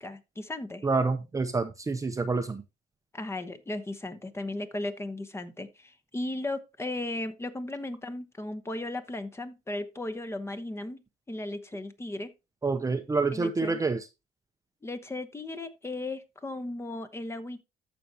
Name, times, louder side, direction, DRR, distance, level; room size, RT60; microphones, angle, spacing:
voice 1, 0.0-0.9 3.1-11.0 11.3-12.3 13.3-13.8 14.8-17.6, left 2 dB, 15° left, 1.0 m, -36 dB
voice 2, 0.8-2.6 12.6-14.0, right 3 dB, 20° right, 0.7 m, -27 dB
14.0 x 5.1 x 2.9 m
cardioid pair, 110°, 17 cm